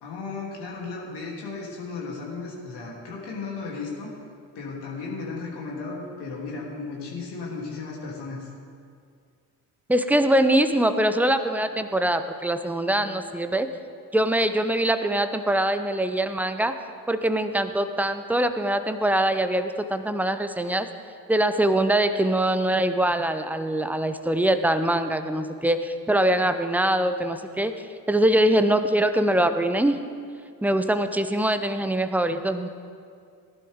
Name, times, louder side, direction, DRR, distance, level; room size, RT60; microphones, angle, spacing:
voice 1, 0.0-4.1 4.5-8.5, left 4 dB, 50° left, -2 dB, 3.2 m, -35 dB
voice 2, 9.9-13.7 14.1-16.8 17.1-20.9 21.3-30.0 30.6-32.7, right 1 dB, 5° right, 10 dB, 0.7 m, -23 dB
18.5 x 11.0 x 3.7 m, 2.2 s
figure-of-eight pair, 50°, 50 cm